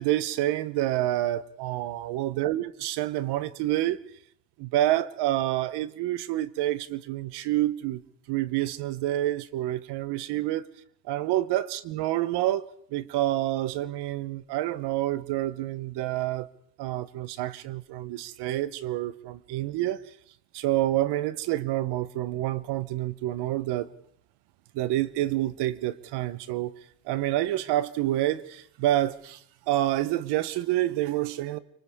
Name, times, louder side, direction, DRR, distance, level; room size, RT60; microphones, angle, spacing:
voice 1, 0.0-4.0 4.6-8.0 8.3-10.7 11.0-16.5 16.8-20.0 20.5-23.9 24.7-26.7 27.0-31.6, right 14 dB, 75° right, 1.1 m, -28 dB
30.0 x 24.5 x 3.7 m
cardioid pair, 155°, 41 cm